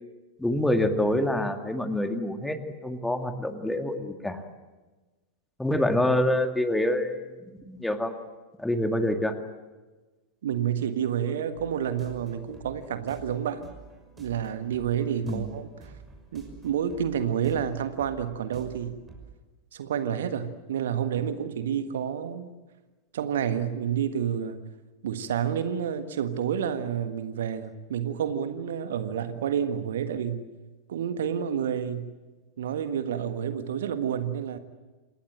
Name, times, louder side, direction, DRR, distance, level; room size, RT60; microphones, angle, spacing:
voice 1, 0.4-2.6 2.8-4.4 5.6-7.3 7.7-8.2 8.6-9.4 15.3-15.4, left 1 dB, 5° left, 7 dB, 2.1 m, -26 dB
voice 2, 10.4-13.7 14.2-15.9 16.3-19.0 19.7-22.5 23.1-24.6 25.0-30.5 30.9-32.1 32.6-34.6, right 8 dB, 60° right, 10 dB, 1.5 m, -29 dB
sound 1, 11.6-19.3, right 5 dB, 15° right, 6.1 m, -50 dB
27.5 x 19.5 x 9.0 m, 1.2 s
figure-of-eight pair, 90°, 0 cm